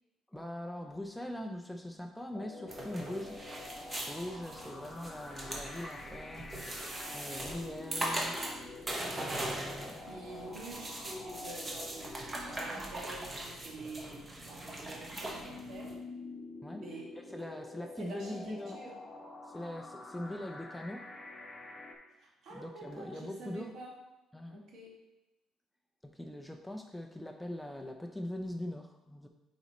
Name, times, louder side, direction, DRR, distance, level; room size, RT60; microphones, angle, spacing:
voice 1, 0.3-3.4 4.1-8.4 9.1-10.1 16.6-16.8 17.3-18.8 19.5-21.1 22.5-23.8 24.3-24.6 26.0-29.3, left 1 dB, 5° left, 4 dB, 0.4 m, -42 dB
sound 1, 2.3-21.9, left 3 dB, 20° left, 0.8 m, -48 dB
sound 2, 2.7-15.9, right 1 dB, 20° right, 1.0 m, -40 dB
voice 2, 10.0-16.1 16.7-17.2 18.0-19.0 22.2-24.0 24.5-25.0, right 2 dB, 65° right, -2 dB, 1.8 m, -47 dB
8.0 x 4.1 x 3.1 m, 0.97 s
cardioid pair, 140°, 0 cm